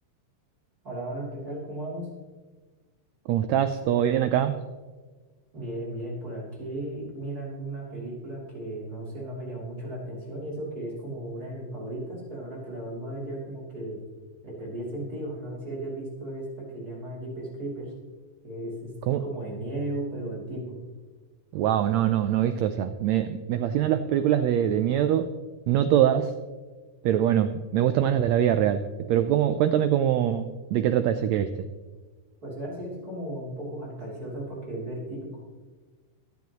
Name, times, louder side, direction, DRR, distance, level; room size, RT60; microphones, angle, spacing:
voice 1, 0.8-2.1 5.5-14.0 14.4-17.9 18.4-18.9 19.2-20.7 32.4-35.4, right 1 dB, 30° right, -5 dB, 3.4 m, -35 dB
voice 2, 3.3-4.6 19.1-19.2 21.5-25.3 25.7-26.3 27.0-28.8 29.1-31.5, right 10 dB, 90° right, 9 dB, 1.5 m, -23 dB
23.0 x 9.3 x 3.1 m, 1.4 s
omnidirectional pair, 3.7 m